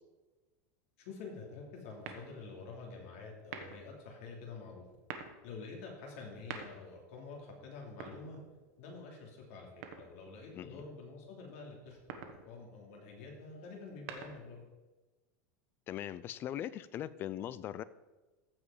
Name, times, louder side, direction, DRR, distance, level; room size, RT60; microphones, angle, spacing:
voice 1, 1.0-4.8 5.4-8.4 8.8-14.6, left 4 dB, 60° left, 0 dB, 2.8 m, -48 dB
sound 1, 2.0-2.6 3.4-4.0 4.9-5.4 6.3-7.0 7.9-8.8 9.8-10.4 11.9-12.5 13.8-14.6, right 7 dB, 65° right, 1.3 m, -47 dB
voice 2, 10.5-10.8 15.9-17.8, left 11 dB, 25° left, 17 dB, 0.3 m, -40 dB
15.0 x 5.1 x 4.9 m, 1.2 s
supercardioid pair, 165°, 8 cm